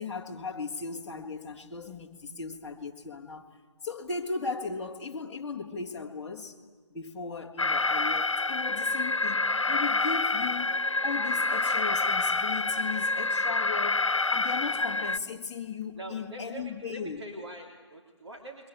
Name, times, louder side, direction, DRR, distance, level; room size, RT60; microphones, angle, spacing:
voice 1, 0.0-3.5 3.8-6.6 6.9-17.2, left 4 dB, 5° left, 1.7 m, -37 dB
Alarm, 7.6-15.2, left 3 dB, 80° left, 1.0 m, -27 dB
voice 2, 15.9-18.7, right 1 dB, 60° right, 3.3 m, -44 dB
29.5 x 23.0 x 8.5 m
figure-of-eight pair, 160°, 16 cm